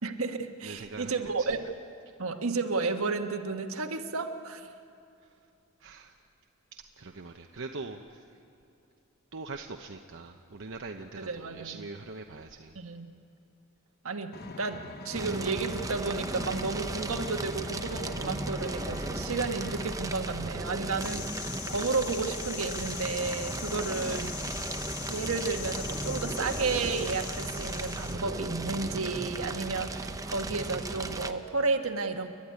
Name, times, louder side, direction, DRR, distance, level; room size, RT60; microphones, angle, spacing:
voice 1, 0.0-1.6 2.2-4.7 11.2-11.7 12.7-13.1 14.0-24.4 25.1-32.3, right 4 dB, 80° right, 5 dB, 1.4 m, -32 dB
voice 2, 0.6-1.7 5.2-5.4 5.8-6.2 6.7-8.4 9.3-12.8, right 3 dB, 65° right, 3 dB, 0.9 m, -43 dB
Vehicle, 14.3-20.0, left 2 dB, 50° left, 1.1 m, -44 dB
Fire, 15.1-31.3, right 2 dB, 15° right, 0.8 m, -36 dB
sound 1, 21.0-28.2, left 11 dB, 75° left, 0.9 m, -41 dB
29.5 x 12.0 x 9.6 m, 2.6 s
head